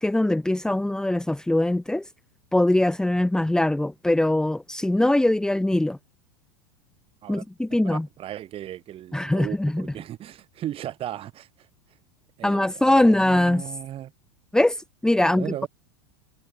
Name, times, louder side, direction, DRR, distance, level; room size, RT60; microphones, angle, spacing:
voice 1, 0.0-2.0 2.5-6.0 7.3-8.1 9.1-9.9 12.4-13.6 14.5-15.7, left 1 dB, 5° left, 1.3 m, -22 dB
voice 2, 7.7-11.5 12.4-14.1 15.2-15.7, right 12 dB, 40° right, 6.9 m, -36 dB
hypercardioid pair, 95°, 15 cm